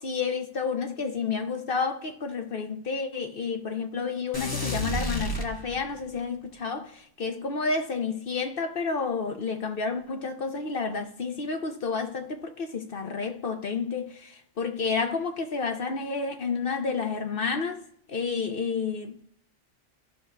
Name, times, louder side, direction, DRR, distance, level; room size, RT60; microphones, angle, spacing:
voice 1, 0.0-17.8 18.1-19.2, left 5 dB, 55° left, 0.9 m, -30 dB
sound 1, 4.3-6.1, left 1 dB, 20° left, 0.8 m, -31 dB
15.5 x 6.1 x 2.2 m
omnidirectional pair, 1.2 m